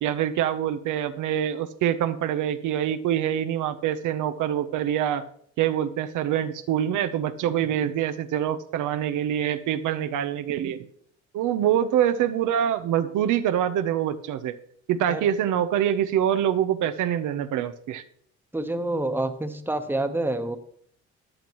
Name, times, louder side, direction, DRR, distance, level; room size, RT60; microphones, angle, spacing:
voice 1, 0.0-5.2 5.6-10.8 11.3-14.5 14.9-18.0, right 10 dB, 85° right, 9 dB, 0.8 m, -25 dB
voice 2, 18.5-20.6, right 2 dB, 5° right, 7 dB, 1.1 m, -27 dB
14.0 x 10.5 x 3.1 m, 0.62 s
cardioid pair, 90°, 30 cm